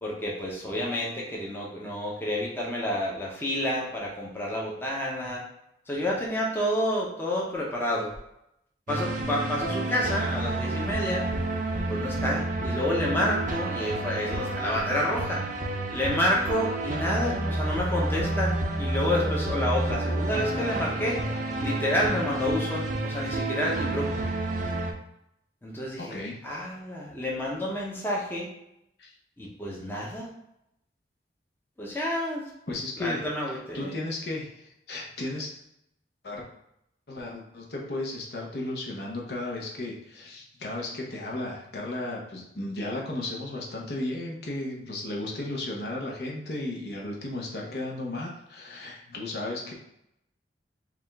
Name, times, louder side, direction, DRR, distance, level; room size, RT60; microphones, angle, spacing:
voice 1, 0.0-5.4 5.9-8.1 8.9-11.2 11.9-15.4 15.9-24.1 25.6-28.5 29.4-30.3 31.8-32.4 33.0-34.0, left 1 dB, 10° left, -4 dB, 0.8 m, -29 dB
sound 1, 8.9-24.9, right 2 dB, 45° right, 0.5 m, -30 dB
voice 2, 26.0-26.4 29.0-29.1 31.9-32.0 32.7-35.5 36.2-36.4 37.1-49.7, left 2 dB, 60° left, -2 dB, 0.8 m, -34 dB
4.9 x 2.5 x 3.4 m, 0.81 s
head